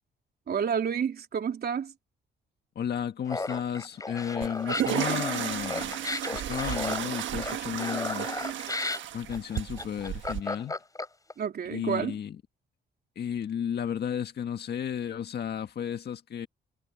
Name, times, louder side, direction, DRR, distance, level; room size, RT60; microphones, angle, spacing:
voice 1, 0.5-1.9 11.4-12.2, right 7 dB, 50° right, 3.6 m, -29 dB
voice 2, 2.8-6.0 6.3-8.3 9.1-10.8 11.7-12.4 13.2-16.5, left 8 dB, 55° left, 1.7 m, -33 dB
Laughter, 3.3-11.3, left 2 dB, 15° left, 4.6 m, -34 dB
sound 1, 4.4-10.4, right 11 dB, 70° right, 1.3 m, -33 dB
cardioid pair, 90°, 20 cm